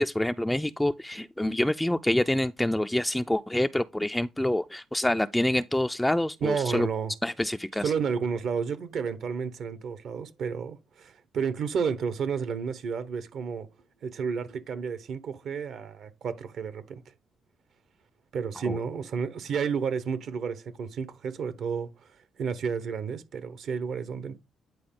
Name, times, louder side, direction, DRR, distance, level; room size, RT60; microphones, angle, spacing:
voice 1, 0.0-6.9 7.2-7.9 18.6-18.8, left 1 dB, 5° left, 0.3 m, -26 dB
voice 2, 6.4-7.1 7.8-13.7 14.0-17.0 18.3-21.9 22.4-24.4, right 6 dB, 65° right, 1.0 m, -31 dB
9.5 x 4.2 x 3.7 m
cardioid pair, 90°, 0 cm